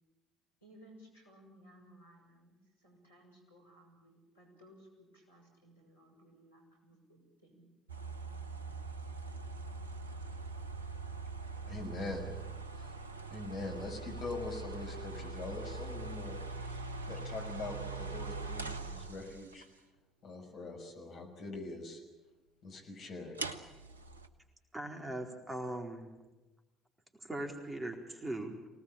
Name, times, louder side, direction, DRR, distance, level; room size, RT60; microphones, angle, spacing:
voice 1, 0.6-7.6, equal, 85° left, -1 dB, 6.4 m, -60 dB
sound 1, 7.9-19.6 23.3-24.3, right 3 dB, 85° right, 0.9 m, -42 dB
voice 2, 11.7-12.3 12.8-12.9 13.3-19.7 20.2-22.0 22.6-23.4, left 3 dB, 50° left, 2 dB, 6.0 m, -43 dB
voice 3, 24.7-26.1 27.2-28.7, right 1 dB, 15° right, 2 dB, 4.3 m, -40 dB
24.5 x 19.0 x 8.9 m, 1.1 s
figure-of-eight pair, 55°, 0 cm